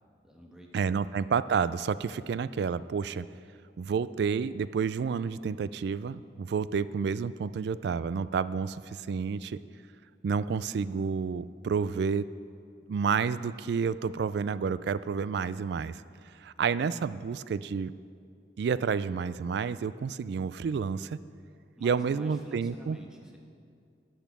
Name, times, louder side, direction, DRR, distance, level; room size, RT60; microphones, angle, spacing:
voice 1, 0.2-1.1 21.8-23.4, equal, 5° right, -1 dB, 1.3 m, -50 dB
voice 2, 0.7-3.3 3.8-9.6 10.2-12.3 12.9-16.0 16.4-17.9 18.6-21.2 21.8-23.0, right 6 dB, 65° right, 16 dB, 0.3 m, -30 dB
12.0 x 8.8 x 6.0 m, 2.3 s
head